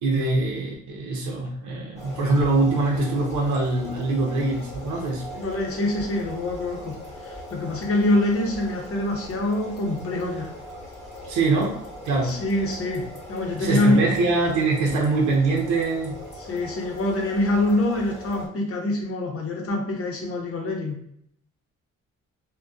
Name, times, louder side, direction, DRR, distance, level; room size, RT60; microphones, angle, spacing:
voice 1, 0.0-5.2 11.3-12.4 13.6-16.2, right 3 dB, 75° right, -2 dB, 0.7 m, -23 dB
sound 1, 2.0-18.5, left 1 dB, 20° left, 1.2 m, -40 dB
voice 2, 5.3-7.0 7.2-10.5 12.2-14.1 16.4-21.0, left 1 dB, 50° left, 0 dB, 0.8 m, -25 dB
2.4 x 2.2 x 2.3 m, 0.70 s
cardioid pair, 90°, 30 cm